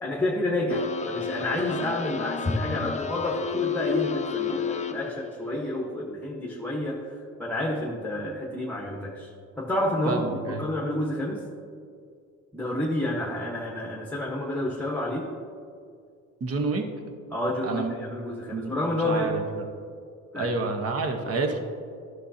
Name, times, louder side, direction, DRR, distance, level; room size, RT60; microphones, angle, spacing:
voice 1, 0.0-11.4 12.5-15.3 17.3-19.3 20.3-20.6, left 1 dB, 5° left, -3 dB, 1.2 m, -29 dB
sound 1, 0.7-5.3, left 7 dB, 25° left, 0.4 m, -31 dB
voice 2, 10.0-10.7 16.4-16.9 17.6-17.9 18.5-18.7 19.0-19.6 20.3-21.6, right 3 dB, 50° right, 5 dB, 1.1 m, -29 dB
11.5 x 6.4 x 2.8 m, 2.3 s
cardioid pair, 90°, 30 cm